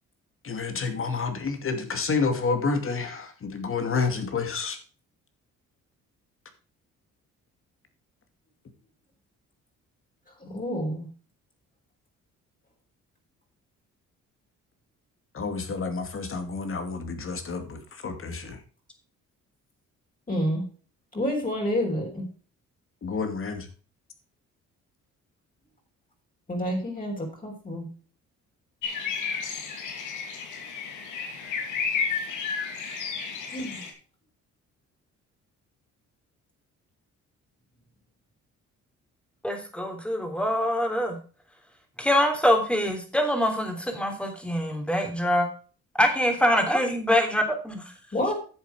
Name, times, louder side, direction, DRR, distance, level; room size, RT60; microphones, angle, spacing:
voice 1, 0.4-4.8 15.3-18.6 23.0-23.7, left 4 dB, 45° left, 7 dB, 2.4 m, -29 dB
voice 2, 10.4-11.0 20.3-20.6 21.1-22.3 26.5-27.9 33.5-33.8 48.1-48.3, equal, 30° left, -1 dB, 4.6 m, -28 dB
sound 1, 28.8-33.9, left 5 dB, 85° left, 2.6 m, -32 dB
voice 3, 39.4-41.2 42.0-45.5 46.0-47.9, equal, 5° left, 4 dB, 3.2 m, -24 dB
10.5 x 7.2 x 4.8 m, 0.38 s
cardioid pair, 90°, 30 cm